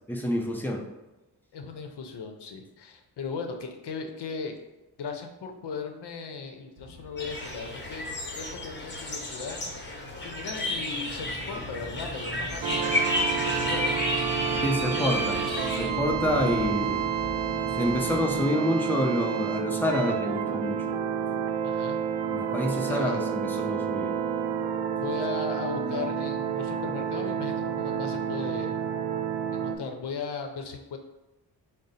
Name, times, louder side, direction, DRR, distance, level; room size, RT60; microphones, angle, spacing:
voice 1, 0.1-0.8 14.6-15.4 15.8-17.0 17.7-21.0 22.3-24.1, left 1 dB, 5° left, 0 dB, 0.6 m, -28 dB
voice 2, 1.5-4.6 5.0-9.7 10.2-13.1 13.3-14.0 21.6-22.0 22.7-23.2 25.0-28.8 29.5-31.0, left 5 dB, 85° left, 4 dB, 0.7 m, -37 dB
sound 1, 6.8-18.5, equal, 30° right, 0.8 m, -41 dB
sound 2, 7.2-15.9, left 1 dB, 25° left, 1.0 m, -32 dB
sound 3, 12.6-29.8, right 8 dB, 90° right, 0.5 m, -29 dB
4.9 x 2.0 x 4.1 m, 1.0 s
wide cardioid pair, 100°, 40 cm